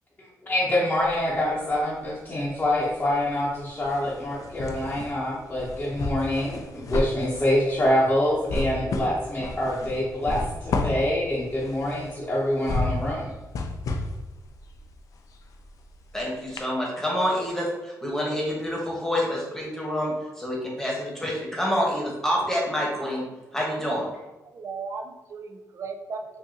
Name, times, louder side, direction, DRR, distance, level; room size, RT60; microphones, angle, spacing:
voice 1, 0.2-13.3, left 1 dB, 20° left, -7 dB, 0.9 m, -26 dB
sound 1, 1.0-2.1 2.4-16.2 16.6-16.7, left 3 dB, 60° left, 0.4 m, -32 dB
voice 2, 16.1-23.2 23.5-24.0, equal, 5° left, -4 dB, 1.3 m, -27 dB
voice 3, 23.6-24.0 24.4-26.3, right 4 dB, 50° right, 4 dB, 0.4 m, -36 dB
4.8 x 2.6 x 2.9 m, 1.1 s
cardioid pair, 115°, 7 cm